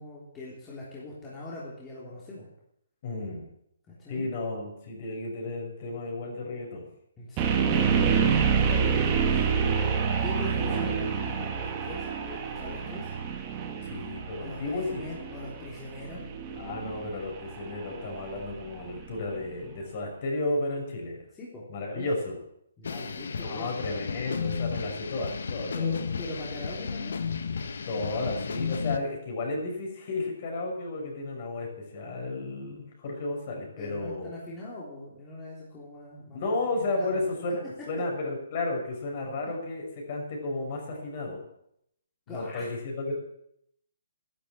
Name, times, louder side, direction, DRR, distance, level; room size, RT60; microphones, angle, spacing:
voice 1, 0.0-2.5 4.0-4.3 7.2-9.5 9.8-13.1 14.4-16.2 21.3-22.1 22.8-23.7 25.7-27.2 33.8-37.2 42.3-42.7, left 2 dB, 15° left, -6 dB, 3.5 m, -41 dB
voice 2, 3.0-3.5 4.1-6.9 10.6-10.7 13.8-15.0 16.6-21.2 21.7-22.4 23.3-25.9 27.9-34.3 36.3-37.6 37.9-41.4 42.3-43.2, left 2 dB, 40° left, 1 dB, 5.9 m, -33 dB
sound 1, 7.4-19.3, right 6 dB, 25° right, 2.0 m, -28 dB
sound 2, 22.8-29.0, left 5 dB, 70° left, 1.4 m, -33 dB
12.0 x 11.5 x 8.6 m, 0.75 s
hypercardioid pair, 160°, 0 cm